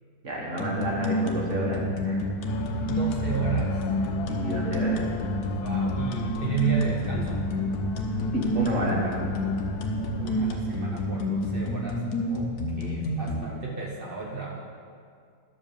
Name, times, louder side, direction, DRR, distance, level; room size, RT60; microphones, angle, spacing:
voice 1, 0.2-2.2 4.3-5.0 8.3-9.2, equal, 35° right, -3 dB, 2.0 m, -29 dB
sound 1, 0.6-13.4, left 1 dB, 55° left, 1.3 m, -29 dB
sound 2, 2.5-10.6, left 5 dB, 85° left, 0.8 m, -37 dB
voice 2, 2.9-3.9 5.6-7.5 10.2-14.6, right 6 dB, 75° right, -2 dB, 0.5 m, -32 dB
11.5 x 5.0 x 6.8 m, 2.2 s
omnidirectional pair, 2.3 m